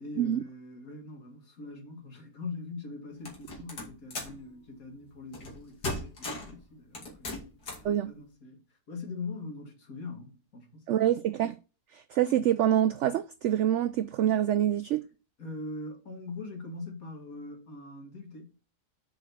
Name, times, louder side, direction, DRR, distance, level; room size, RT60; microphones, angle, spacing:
voice 1, 0.0-11.0 15.4-18.5, left 3 dB, 60° left, 2.6 m, -42 dB
sound 1, 3.3-4.4 5.3-5.6 5.8-6.6 7.0-7.9, left 2 dB, 80° left, 3.1 m, -37 dB
voice 2, 10.9-11.6 11.9-15.0, right 11 dB, 75° right, 0.6 m, -26 dB
7.3 x 5.5 x 5.7 m
omnidirectional pair, 1.7 m